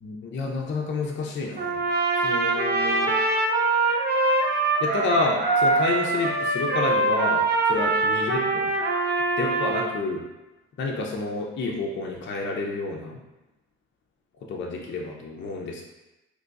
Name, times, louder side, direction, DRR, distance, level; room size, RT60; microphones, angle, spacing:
voice 1, 0.0-1.8 2.2-3.1 4.8-7.4 7.7-8.8 9.4-10.2 10.8-13.2 14.5-15.9, left 3 dB, 40° left, -1 dB, 0.5 m, -29 dB
Trumpet, 1.6-9.9, right 3 dB, 35° right, 0.5 m, -23 dB
3.0 x 2.3 x 3.9 m, 1.0 s
cardioid pair, 90°, 30 cm